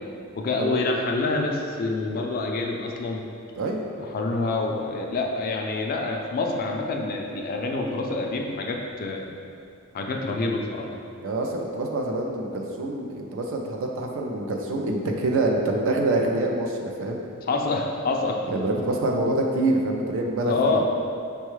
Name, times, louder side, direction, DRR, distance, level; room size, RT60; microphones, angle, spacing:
voice 1, 0.3-3.2 4.1-9.3 9.9-10.9 17.5-18.4 20.4-20.8, left 3 dB, 40° left, 1 dB, 0.3 m, -27 dB
voice 2, 11.2-17.2 18.5-20.8, right 2 dB, 60° right, 1 dB, 0.4 m, -26 dB
5.5 x 2.3 x 3.0 m, 2.5 s
head